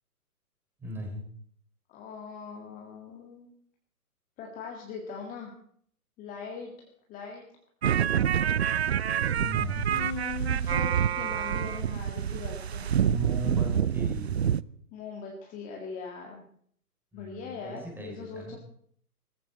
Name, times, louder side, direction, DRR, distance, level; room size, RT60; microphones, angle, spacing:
voice 1, 0.8-1.2 9.4-9.9 13.0-14.4 17.1-18.6, equal, 5° right, 1 dB, 3.7 m, -37 dB
voice 2, 1.9-3.5 4.4-5.5 6.2-6.7 7.1-7.4 9.9-12.9 14.9-16.4 17.1-18.6, left 5 dB, 15° left, 0 dB, 1.9 m, -40 dB
sound 1, 7.8-14.6, right 9 dB, 45° right, 0.5 m, -27 dB
20.0 x 15.0 x 4.4 m, 0.64 s
figure-of-eight pair, 120°, 46 cm